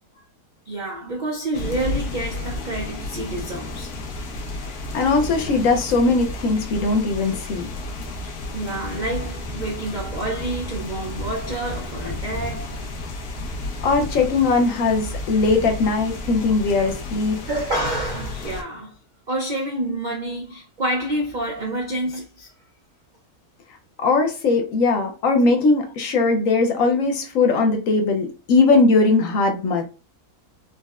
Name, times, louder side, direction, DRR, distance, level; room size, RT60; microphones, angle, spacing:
voice 1, 0.7-4.0 8.2-12.8 17.5-19.0 19.3-22.5, right 1 dB, 65° right, 0.4 m, -28 dB
sound 1, 1.5-18.6, left 2 dB, 85° left, 1.3 m, -32 dB
voice 2, 4.9-7.7 13.8-17.4 24.0-29.8, left 3 dB, 65° left, 1.0 m, -19 dB
4.0 x 2.1 x 2.3 m
omnidirectional pair, 1.6 m